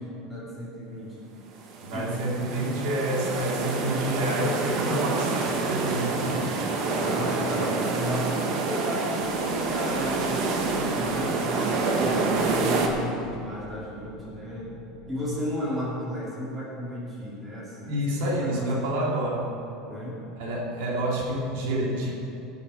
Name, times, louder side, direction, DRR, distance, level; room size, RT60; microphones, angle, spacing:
voice 1, 0.0-1.3 1.9-2.2 7.0-11.6 11.9-14.8 15.1-17.9 18.2-19.1 19.8-20.2, equal, 10° right, -7 dB, 2.7 m, -34 dB
sound 1, 1.5-12.9, right 3 dB, 40° right, 1.3 m, -27 dB
voice 2, 1.8-6.5 17.9-19.5 20.4-22.1, right 1 dB, 65° right, -3 dB, 2.7 m, -28 dB
sound 2, 9.2-15.3, left 1 dB, 40° left, 1.8 m, -46 dB
17.5 x 7.1 x 5.6 m, 2.9 s
cardioid pair, 170°, 0 cm